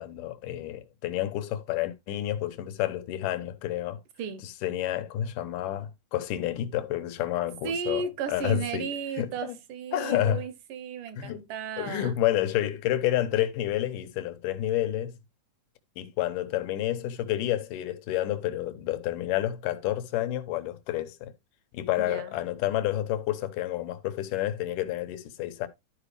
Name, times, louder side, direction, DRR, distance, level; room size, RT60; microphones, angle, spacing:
voice 1, 0.0-4.0 4.4-8.0 8.3-8.9 9.2-9.6 9.9-10.4 11.2-11.4 11.8-15.2 16.0-21.3 21.7-25.7, left 13 dB, 90° left, 2.5 m, -29 dB
voice 2, 7.6-12.2 22.0-22.4, right 6 dB, 80° right, 2.6 m, -34 dB
12.5 x 4.9 x 3.3 m
omnidirectional pair, 3.7 m